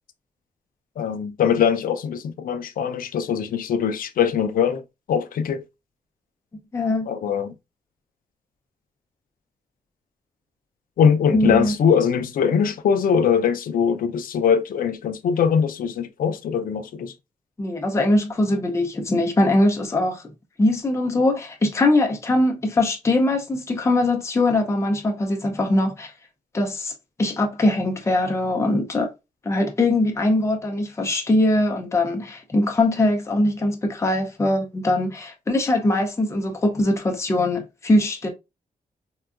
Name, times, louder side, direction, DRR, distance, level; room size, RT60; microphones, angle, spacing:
voice 1, 1.0-4.8 5.1-5.6 7.1-7.5 11.0-17.1, left 7 dB, 75° left, 0.4 m, -21 dB
voice 2, 6.7-7.1 11.3-11.7 17.6-20.2 20.6-26.1 26.5-26.9 27.2-29.1 29.4-38.3, left 1 dB, 20° left, 0.5 m, -21 dB
3.7 x 2.2 x 2.3 m
wide cardioid pair, 125°, 15 cm